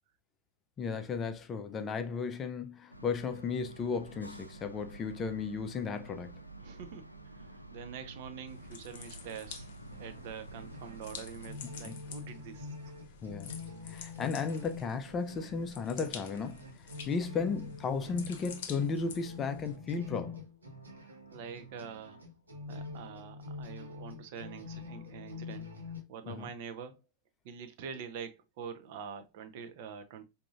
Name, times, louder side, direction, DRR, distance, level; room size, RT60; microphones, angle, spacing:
voice 1, 0.8-6.4 11.8-11.9 13.2-13.5 13.8-16.6 17.1-20.4 26.3-26.5, left 5 dB, 25° left, 0.5 m, -35 dB
sound 1, 2.9-11.6, right 2 dB, 90° left, 0.4 m, -50 dB
voice 2, 6.6-13.0 21.0-22.2 22.7-25.7 26.1-27.0 27.4-30.3, right 7 dB, 50° right, 0.7 m, -45 dB
sound 2, 8.5-19.8, left 6 dB, 55° left, 0.7 m, -49 dB
sound 3, 9.9-26.0, left 4 dB, 75° right, 0.9 m, -46 dB
4.8 x 2.7 x 2.4 m
figure-of-eight pair, 90°, 0 cm